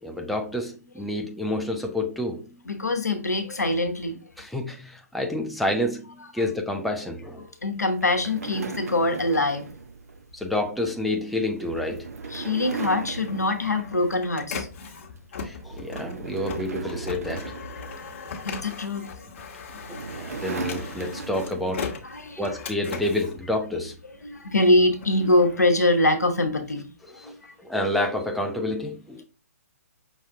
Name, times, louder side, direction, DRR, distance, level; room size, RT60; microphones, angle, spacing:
voice 1, 0.0-2.7 4.4-7.5 10.3-12.1 15.4-17.5 20.1-21.9 22.4-24.0 27.2-27.3 27.6-29.2, left 1 dB, ahead, 0.3 m, -29 dB
voice 2, 2.6-4.2 7.4-9.7 12.3-14.7 17.3-17.4 17.8-19.3 19.7-20.1 22.0-22.6 24.1-26.9 27.2-27.5, left 2 dB, 85° left, 0.9 m, -24 dB
sound 1, 8.0-14.5 14.9-15.2 15.6-18.6 19.4-21.8, right 4 dB, 65° right, 0.6 m, -37 dB
Printer, 12.9-24.3 24.7-26.6, left 5 dB, 50° left, 1.0 m, -39 dB
5.6 x 2.4 x 3.5 m
figure-of-eight pair, 130°, 9 cm